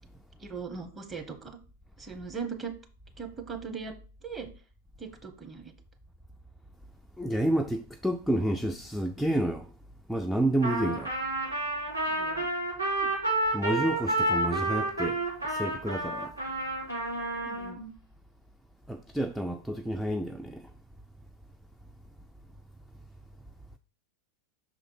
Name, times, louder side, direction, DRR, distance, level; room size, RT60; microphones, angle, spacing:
voice 1, 0.4-1.5 2.0-2.7 3.2-3.9 4.2-4.5 5.0-5.7 12.1-12.5 17.4-17.9, right 5 dB, 15° right, 1.1 m, -39 dB
voice 2, 7.2-9.7 10.1-11.1 13.0-13.1 13.5-16.3 18.9-20.7, right 1 dB, ahead, 0.4 m, -30 dB
Trumpet, 10.6-17.7, right 2 dB, 85° right, 2.8 m, -30 dB
6.0 x 3.8 x 4.9 m
figure-of-eight pair, 90°, 0 cm